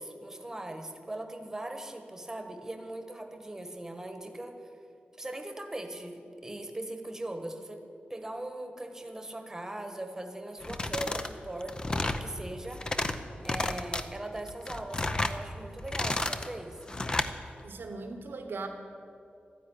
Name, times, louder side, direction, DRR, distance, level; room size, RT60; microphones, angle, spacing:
voice 1, 0.0-4.8 5.2-7.8 8.1-13.1 13.4-16.8, right 1 dB, 15° right, 6 dB, 1.3 m, -40 dB
sound 1, 10.6-11.3 11.6-12.2 12.7-13.2 13.4-14.0 14.5-15.4 15.8-16.5 16.9-17.3, left 2 dB, 25° left, 0.7 m, -31 dB
voice 2, 17.6-18.7, right 3 dB, 75° right, 5 dB, 1.3 m, -39 dB
13.0 x 10.0 x 10.0 m, 2.6 s
wide cardioid pair, 175°, 4 cm